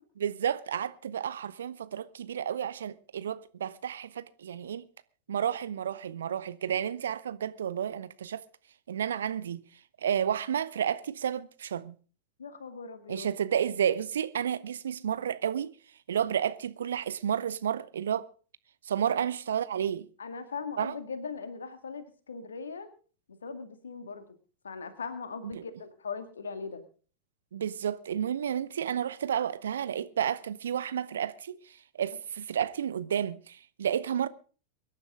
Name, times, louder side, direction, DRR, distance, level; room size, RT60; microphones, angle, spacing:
voice 1, 0.2-4.9 5.3-8.4 8.9-9.6 10.0-12.0 13.1-15.7 16.1-18.3 18.8-20.1 20.8-21.0 25.4-25.6 27.5-34.3, right 9 dB, 65° right, 0.7 m, -31 dB
voice 2, 12.4-13.3 19.1-19.3 20.2-22.9 23.3-24.2 24.6-26.8, left 5 dB, 70° left, 2.0 m, -39 dB
24.0 x 10.5 x 3.7 m
figure-of-eight pair, 90°, 0 cm